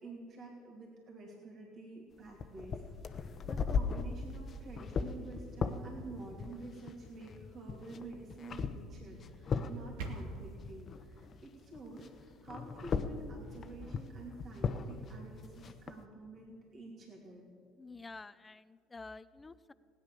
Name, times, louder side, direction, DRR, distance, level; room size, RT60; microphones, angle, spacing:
voice 1, 0.0-2.8 3.1-17.4, right 2 dB, 45° right, -2 dB, 2.9 m, -49 dB
sound 1, 2.3-11.5 11.7-15.9, left 5 dB, 45° left, 0.9 m, -38 dB
sound 2, 9.5-10.6, right 3 dB, 75° right, 1.5 m, -43 dB
voice 2, 17.8-19.7, left 3 dB, 20° left, 15 dB, 0.5 m, -49 dB
16.5 x 9.9 x 6.9 m, 2.2 s
hypercardioid pair, 65°, 0 cm